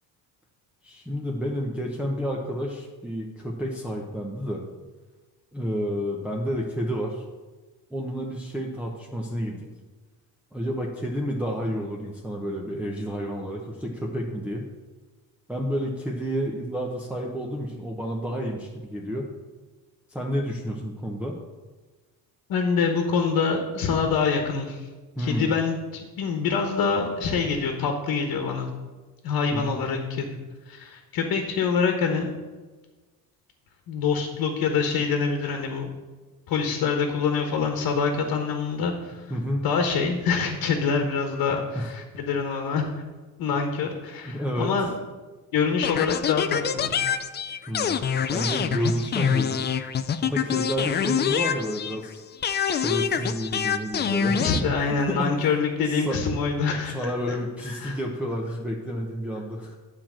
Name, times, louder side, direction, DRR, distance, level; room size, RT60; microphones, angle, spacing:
voice 1, 0.8-4.6 5.5-7.3 7.9-9.7 10.5-14.7 15.5-19.3 20.1-21.4 25.2-25.5 29.5-29.8 39.3-39.7 41.7-41.9 44.2-44.7 47.7-48.0 48.3-49.7 50.2-52.2 52.7-54.6 54.9-55.5 55.9-56.2 56.9-59.8, equal, 5° right, -3 dB, 0.8 m, -30 dB
voice 2, 22.5-24.9 25.2-28.7 29.2-30.4 30.7-32.3 33.9-35.9 36.5-39.2 39.6-42.8 43.4-44.9 45.5-46.9 54.4-57.4 57.6-58.0, left 5 dB, 65° left, 4 dB, 1.3 m, -25 dB
sound 1, 45.8-52.1 52.4-54.6, left 8 dB, 30° left, 0.4 m, -26 dB
9.6 x 4.5 x 7.5 m, 1.3 s
cardioid pair, 145°, 38 cm